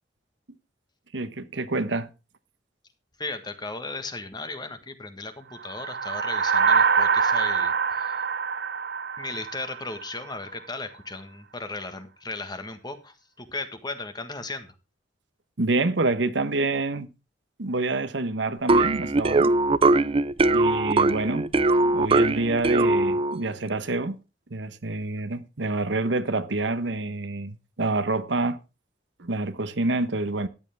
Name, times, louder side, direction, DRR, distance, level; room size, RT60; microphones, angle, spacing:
voice 1, 1.1-2.1 15.6-17.1 17.6-19.5 20.5-21.5 21.8-24.2 24.5-28.6 29.2-30.5, right 2 dB, 85° right, 1.1 m, -27 dB
voice 2, 3.2-8.2 9.2-14.7, left 3 dB, 25° left, 1.5 m, -36 dB
sound 1, 5.6-10.2, right 6 dB, 60° right, 0.9 m, -24 dB
sound 2, 18.7-23.5, right 2 dB, 30° right, 0.5 m, -21 dB
13.5 x 10.0 x 3.5 m
head